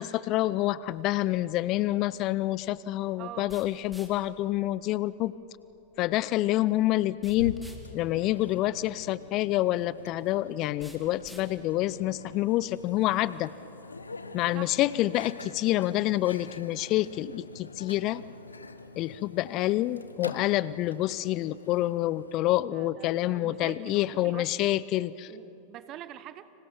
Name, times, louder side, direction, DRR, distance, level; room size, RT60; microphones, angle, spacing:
voice 1, 0.0-5.3 6.0-7.6 7.9-13.5 14.3-18.2 19.0-25.3, left 15 dB, 40° left, 19 dB, 0.6 m, -27 dB
sound 1, 0.8-13.4, equal, 5° right, 3.3 m, -57 dB
voice 2, 3.2-3.6 14.5-14.8 22.7-24.7 25.3-26.5, right 12 dB, 35° right, 14 dB, 1.3 m, -45 dB
Microwave oven, 7.3-22.4, left 3 dB, 80° left, 1.2 m, -45 dB
30.0 x 26.0 x 7.2 m, 3.0 s
figure-of-eight pair, 90°, 0 cm